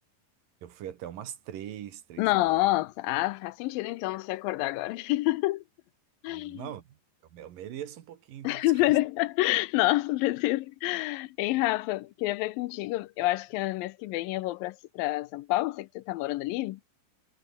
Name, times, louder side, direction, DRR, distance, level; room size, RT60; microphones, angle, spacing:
voice 1, 0.6-2.7 6.3-7.0 7.3-9.0, right 11 dB, 70° right, 3.3 m, -42 dB
voice 2, 2.2-5.6 6.2-6.7 8.4-16.8, left 18 dB, 80° left, 2.4 m, -28 dB
omnidirectional pair, 4.1 m